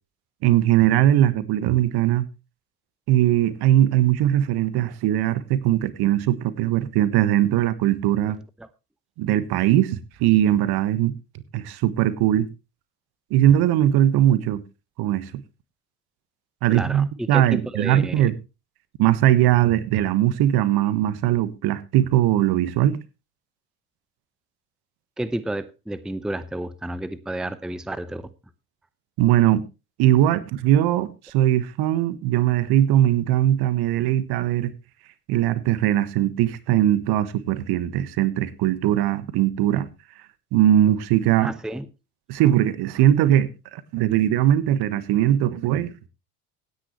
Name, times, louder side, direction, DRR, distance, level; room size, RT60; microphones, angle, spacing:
voice 1, 0.4-2.2 3.1-8.4 9.2-11.1 11.5-12.5 13.3-14.6 15.0-15.4 16.6-18.3 19.0-23.0 29.2-29.6 30.0-34.7 35.3-39.9 40.5-41.5 42.3-46.1, right 12 dB, 55° right, 1.4 m, -20 dB
voice 2, 16.7-18.3 25.2-28.2 41.4-41.9, right 1 dB, ahead, 0.8 m, -31 dB
16.5 x 9.9 x 3.1 m
hypercardioid pair, 65°, 46 cm